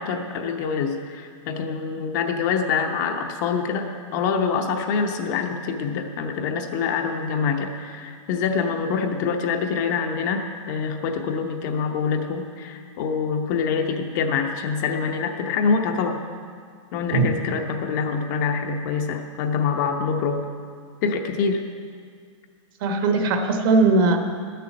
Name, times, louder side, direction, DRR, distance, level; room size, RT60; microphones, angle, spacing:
voice 1, 0.0-3.9 4.1-16.2 16.9-20.4 21.0-21.7, left 5 dB, 35° left, 4 dB, 0.8 m, -25 dB
voice 2, 22.8-24.2, right 3 dB, 40° right, 5 dB, 1.2 m, -19 dB
12.0 x 6.9 x 7.4 m, 2.1 s
hypercardioid pair, 165°, 17 cm